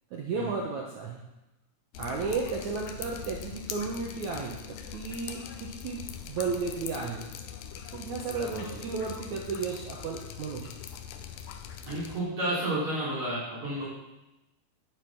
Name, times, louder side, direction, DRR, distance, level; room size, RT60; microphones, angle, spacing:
voice 1, 0.1-1.2 2.0-7.2 7.9-10.7, right 4 dB, 70° right, -1 dB, 2.0 m, -34 dB
Drip, 1.9-12.2, left 8 dB, 80° left, 2.5 m, -42 dB
voice 2, 8.4-8.8 11.9-13.8, right 1 dB, 50° right, -8 dB, 4.3 m, -31 dB
9.6 x 8.9 x 6.0 m, 0.98 s
omnidirectional pair, 4.5 m